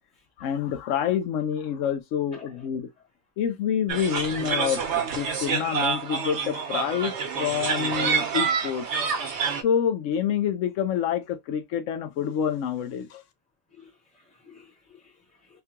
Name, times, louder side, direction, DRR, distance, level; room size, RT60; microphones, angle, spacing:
voice 1, 0.4-2.9 3.4-8.9 9.6-13.2, left 8 dB, 80° left, 1.0 m, -27 dB
sound 1, 3.9-9.6, right 6 dB, 65° right, 1.1 m, -27 dB
voice 2, 13.7-15.6, left 4 dB, 5° left, 0.7 m, -53 dB
3.6 x 2.3 x 2.8 m
omnidirectional pair, 1.3 m